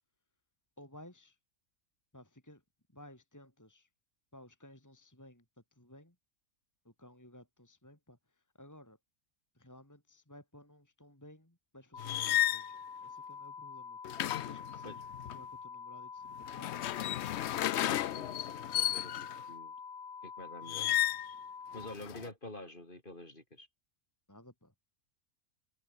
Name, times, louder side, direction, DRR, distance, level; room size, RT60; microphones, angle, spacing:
voice 1, 0.8-1.4 2.1-2.6 2.9-3.9 4.3-6.2 6.8-9.0 9.5-14.0 14.5-15.0 15.3-16.8 24.3-24.7, left 1 dB, 10° left, 3.0 m, -56 dB
sound 1, 11.9-21.9, left 6 dB, 80° left, 2.3 m, -46 dB
sound 2, 12.0-12.7 14.0-15.4 16.4-19.4 20.7-21.3 21.7-22.3, left 13 dB, 65° left, 0.7 m, -33 dB
voice 2, 17.5-19.1 19.5-19.8 20.2-20.9 21.7-23.7, left 1 dB, 35° left, 4.9 m, -48 dB
open air
omnidirectional pair, 1.5 m